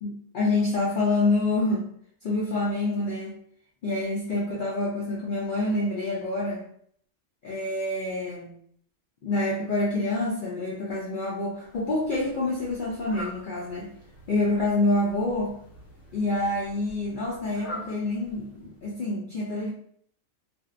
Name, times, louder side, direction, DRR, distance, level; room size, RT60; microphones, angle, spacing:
voice 1, 0.0-1.9 2.2-3.4 3.8-6.6 7.4-8.5 9.2-13.9 14.3-15.5 16.1-19.7, left 2 dB, 80° left, -5 dB, 0.4 m, -27 dB
Fowl, 11.6-18.9, equal, 60° left, 1.1 m, -45 dB
2.5 x 2.0 x 2.4 m, 0.63 s
omnidirectional pair, 1.4 m